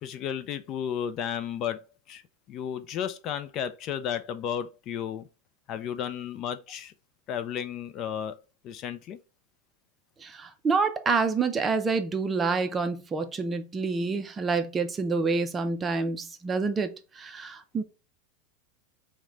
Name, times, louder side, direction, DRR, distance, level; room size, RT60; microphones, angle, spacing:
voice 1, 0.0-2.2 2.5-5.3 5.7-6.9 7.3-8.4 8.6-9.2, left 9 dB, 40° left, 0.4 m, -33 dB
voice 2, 10.2-17.8, right 4 dB, 20° right, 0.5 m, -28 dB
4.5 x 2.2 x 3.7 m
supercardioid pair, 140°, 0 cm